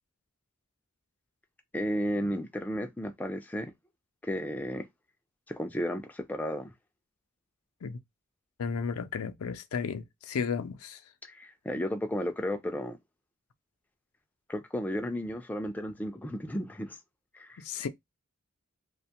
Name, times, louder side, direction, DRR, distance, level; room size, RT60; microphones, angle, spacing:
voice 1, 1.7-3.7 4.2-4.9 5.5-6.7 11.2-13.0 14.5-17.0 17.3-17.6, equal, 10° left, 0.3 m, -33 dB
voice 2, 8.6-11.0 17.6-17.9, left 6 dB, 80° left, 0.4 m, -33 dB
2.4 x 2.2 x 2.8 m
head